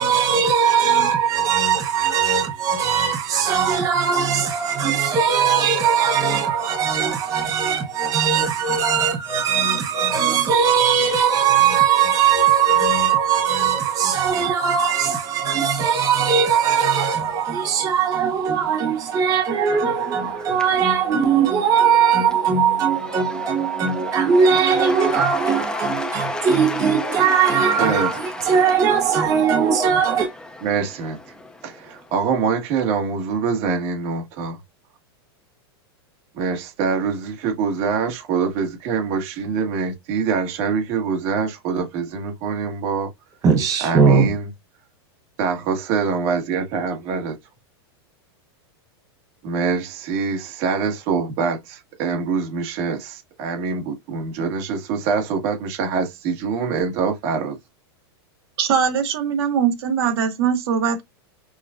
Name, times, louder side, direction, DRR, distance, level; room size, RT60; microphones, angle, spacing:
voice 1, 0.0-30.3 43.4-44.3, right 7 dB, 25° right, 0.9 m, -19 dB
Cheering / Applause / Crowd, 18.9-32.3, left 2 dB, 5° left, 0.6 m, -34 dB
voice 2, 27.8-28.1 30.6-31.2 31.6-34.6 36.3-43.1 43.8-44.5 45.4-47.4 49.4-57.6, right 5 dB, 45° right, 1.5 m, -24 dB
voice 3, 58.6-61.0, right 7 dB, 65° right, 1.6 m, -21 dB
6.2 x 2.4 x 2.4 m
supercardioid pair, 145°, 14 cm